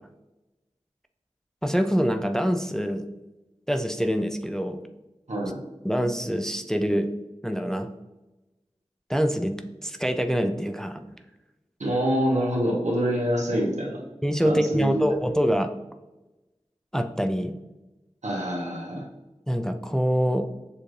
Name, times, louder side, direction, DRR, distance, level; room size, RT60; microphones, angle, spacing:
voice 1, 1.6-3.1 3.7-4.8 5.8-7.1 7.4-7.9 9.1-9.6 9.8-11.0 14.2-15.7 16.9-17.5 19.5-20.5, equal, 5° left, 7 dB, 0.4 m, -25 dB
voice 2, 5.3-5.6 11.8-14.0 14.4-15.0 18.2-19.1, equal, 90° right, -2 dB, 1.1 m, -26 dB
6.8 x 2.5 x 3.2 m, 1.0 s
wide cardioid pair, 45°, 12 cm